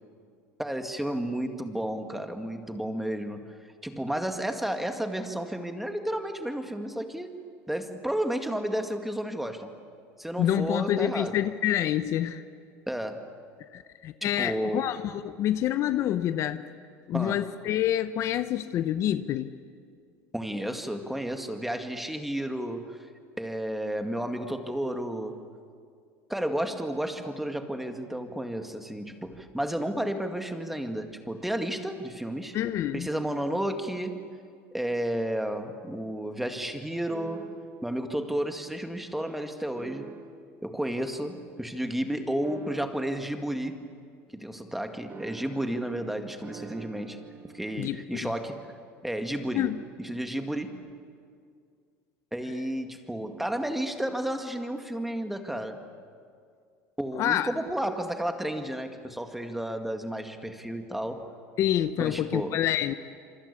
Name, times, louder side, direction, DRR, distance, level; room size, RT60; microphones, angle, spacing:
voice 1, 0.6-3.5 3.8-9.8 10.2-11.4 12.9-13.3 14.2-14.9 17.1-17.5 20.3-23.1 23.4-25.4 26.3-32.6 32.9-34.3 34.7-37.6 37.8-40.1 40.6-43.8 44.3-48.7 49.0-50.9 52.3-55.8 57.0-61.3 62.0-62.7, right 1 dB, 5° right, 6 dB, 2.1 m, -32 dB
voice 2, 10.4-12.4 13.7-16.7 17.1-19.5 32.5-33.1 47.8-48.3 49.5-49.8 57.2-57.5 61.6-62.9, left 11 dB, 50° left, 12 dB, 0.9 m, -27 dB
sound 1, 37.1-37.9 39.8-40.6 42.4-43.3 45.1-47.8, right 4 dB, 30° right, 1.5 m, -45 dB
27.0 x 25.0 x 8.6 m, 2.3 s
supercardioid pair, 130°, 7 cm